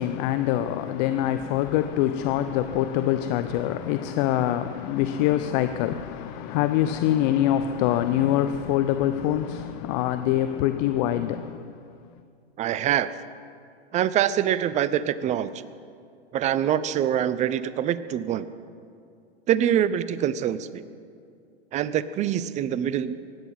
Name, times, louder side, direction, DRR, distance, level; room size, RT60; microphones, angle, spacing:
voice 1, 0.0-11.7, left 12 dB, 40° left, 0.8 m, -24 dB
voice 2, 12.6-13.1 13.9-15.5 16.3-18.5 19.5-20.8 21.7-23.2, right 10 dB, 20° right, 0.5 m, -24 dB
23.5 x 10.5 x 5.8 m
hypercardioid pair, 110°, 33 cm